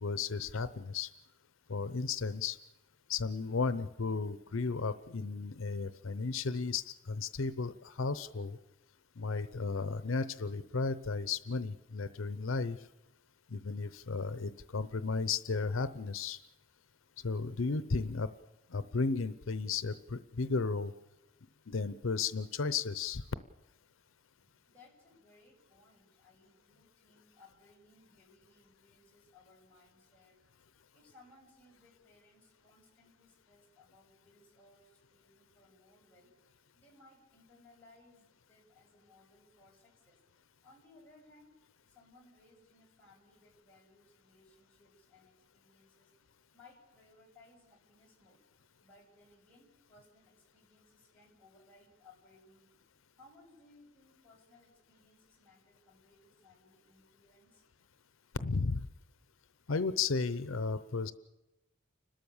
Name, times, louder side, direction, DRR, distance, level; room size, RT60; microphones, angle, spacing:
voice 1, 0.0-1.1 1.7-2.6 3.1-8.6 9.2-12.8 13.5-16.4 17.2-18.3 18.7-20.9 21.7-23.2 58.4-58.8 59.7-61.1, left 4 dB, 80° left, 13 dB, 0.7 m, -34 dB
voice 2, 24.4-30.4 30.9-40.2 40.6-41.6 41.8-48.4 48.8-52.8 53.2-57.6, left 2 dB, 5° left, -4 dB, 6.6 m, -63 dB
30.0 x 13.0 x 7.2 m, 0.99 s
head